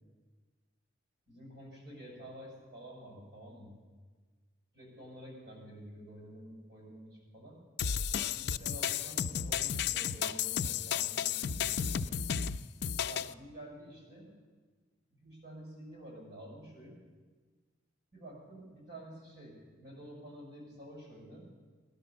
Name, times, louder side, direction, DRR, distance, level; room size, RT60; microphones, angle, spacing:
voice 1, 1.3-3.8 4.7-7.6 8.1-11.8 13.0-14.3 15.1-17.0 18.1-21.5, right 1 dB, 60° right, -3 dB, 6.7 m, -50 dB
sound 1, 7.8-13.3, left 8 dB, 60° left, 0.4 m, -33 dB
18.0 x 11.0 x 7.1 m, 1.4 s
head